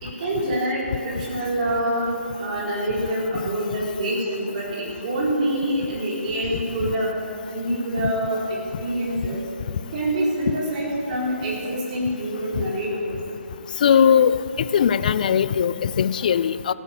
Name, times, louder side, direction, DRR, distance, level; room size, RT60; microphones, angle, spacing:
voice 1, 0.0-2.1 2.4-7.1 7.5-9.4 9.9-13.1, right 1 dB, 30° right, -5 dB, 4.1 m, -26 dB
voice 2, 13.8-14.4 14.7-16.7, left 8 dB, 35° left, 16 dB, 0.4 m, -19 dB
15.5 x 9.6 x 6.8 m, 2.5 s
figure-of-eight pair, 140°, 8 cm